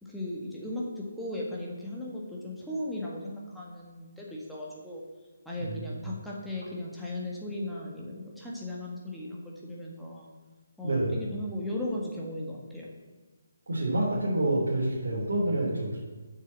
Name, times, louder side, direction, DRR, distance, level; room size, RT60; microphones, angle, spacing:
voice 1, 0.0-5.0 5.5-10.3 10.8-12.9, left 1 dB, ahead, -5 dB, 1.8 m, -37 dB
voice 2, 5.6-6.0 10.8-11.2 13.7-16.0, right 1 dB, 65° right, -7 dB, 3.3 m, -28 dB
8.3 x 6.5 x 7.4 m, 1.4 s
figure-of-eight pair, 145°, 0 cm